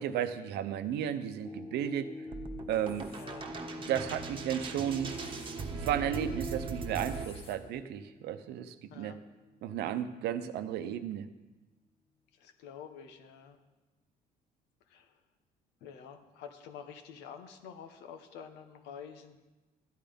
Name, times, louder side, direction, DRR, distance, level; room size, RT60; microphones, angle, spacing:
voice 1, 0.0-2.1 2.7-3.1 3.9-5.1 5.7-9.2 9.6-11.3, right 10 dB, 80° right, 10 dB, 0.8 m, -34 dB
sound 1, 1.4-9.8 10.3-10.4, left 2 dB, 15° left, 0.5 m, -48 dB
sound 2, 2.3-7.3, right 4 dB, 30° right, 1.2 m, -39 dB
sound 3, 2.8-3.3 4.9-5.6 7.0-7.6, left 3 dB, 35° left, 1.8 m, -55 dB
voice 2, 3.1-3.5 8.9-9.2 12.4-13.6 14.9-15.1 15.8-19.4, left 7 dB, 90° left, 7 dB, 1.2 m, -48 dB
12.5 x 9.4 x 5.2 m, 1.1 s
cardioid pair, 110°, 17 cm